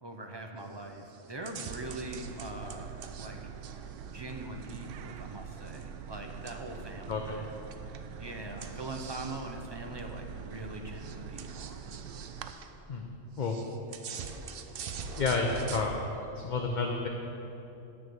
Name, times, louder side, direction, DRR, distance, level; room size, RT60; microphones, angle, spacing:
voice 1, 0.0-2.9 3.2-3.4 4.1-7.6 8.2-11.7, right 2 dB, 25° right, 3 dB, 0.6 m, -42 dB
sound 1, 0.6-0.8 1.1-3.3 3.6-4.9 6.5-7.0 7.7-8.1 8.6-9.5 10.0-10.1 10.6-10.7 10.9-12.7 13.4-15.9, right 5 dB, 60° right, 0.7 m, -44 dB
sound 2, 2.0-12.5, right 7 dB, 80° right, 0.9 m, -44 dB
voice 2, 7.1-7.4 12.9-13.1 13.4-13.6 15.2-16.1 16.4-17.1, left 4 dB, 45° left, 2 dB, 0.7 m, -30 dB
9.9 x 6.1 x 7.9 m, 3.0 s
omnidirectional pair, 1.3 m